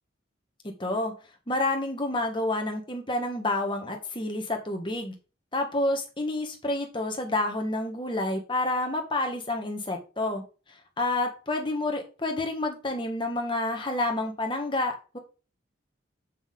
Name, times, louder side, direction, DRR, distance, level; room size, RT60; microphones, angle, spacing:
voice 1, 0.6-1.1 1.5-5.1 5.5-10.4 10.7-15.2, left 2 dB, 25° left, 4 dB, 1.6 m, -29 dB
7.7 x 5.9 x 3.7 m, 0.33 s
head